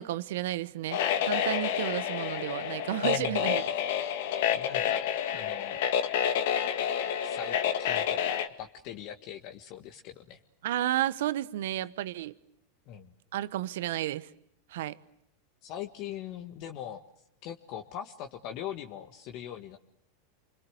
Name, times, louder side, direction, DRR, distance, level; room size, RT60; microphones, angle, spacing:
voice 1, 0.0-3.6 10.6-12.3 13.3-14.3 14.7-15.0, right 13 dB, 75° right, 1.1 m, -32 dB
sound 1, 0.9-8.5, left 9 dB, 70° left, 2.0 m, -29 dB
voice 2, 3.0-3.5 4.5-5.1 5.3-5.8 7.2-10.4 12.9-13.1 15.6-17.0 17.4-19.8, left 10 dB, 55° left, 1.7 m, -41 dB
28.5 x 22.5 x 8.0 m
hypercardioid pair, 105°, 0 cm